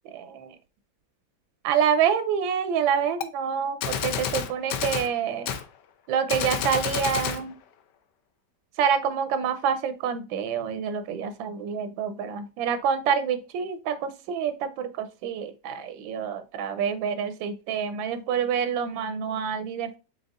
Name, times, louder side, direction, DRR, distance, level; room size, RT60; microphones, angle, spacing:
voice 1, 0.1-0.5 1.6-5.5 6.1-7.5 8.8-20.0, right 7 dB, 85° right, 10 dB, 1.3 m, -27 dB
Gunshot gunfire, 3.2-3.3 3.8-5.1 5.5-5.6 6.3-7.4, left 8 dB, 75° left, 1.2 m, -29 dB
5.2 x 3.8 x 2.3 m, 0.32 s
omnidirectional pair, 2.0 m